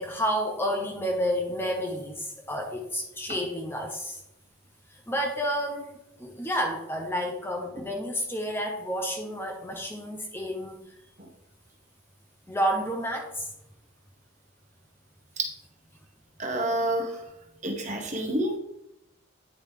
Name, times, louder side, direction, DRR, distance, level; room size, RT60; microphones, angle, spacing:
voice 1, 0.0-4.2 4.9-5.9 6.2-10.8 12.5-13.5, equal, 10° left, 1 dB, 0.7 m, -30 dB
voice 2, 16.4-17.2 17.6-18.6, right 1 dB, 35° right, 3 dB, 1.1 m, -28 dB
9.2 x 5.0 x 3.5 m, 0.86 s
head